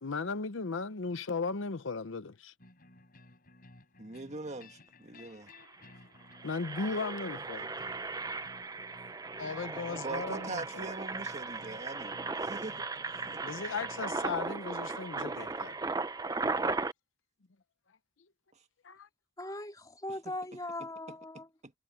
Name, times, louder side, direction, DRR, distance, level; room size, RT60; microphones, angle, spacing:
voice 1, 0.0-2.5 6.4-7.7 9.4-10.9 13.4-15.8 18.8-19.1, left 4 dB, 70° left, 0.8 m, -36 dB
sound 1, 2.6-14.1, left 1 dB, 50° left, 4.1 m, -57 dB
voice 2, 4.0-5.5 10.0-12.9 13.3-13.6 20.3-20.4 20.8-21.7, right 3 dB, 35° right, 1.9 m, -43 dB
Engine, 5.2-5.3 5.5-5.8 6.2-16.9, right 3 dB, 20° right, 0.6 m, -37 dB
voice 3, 19.4-21.4, left 1 dB, 20° left, 3.3 m, -39 dB
head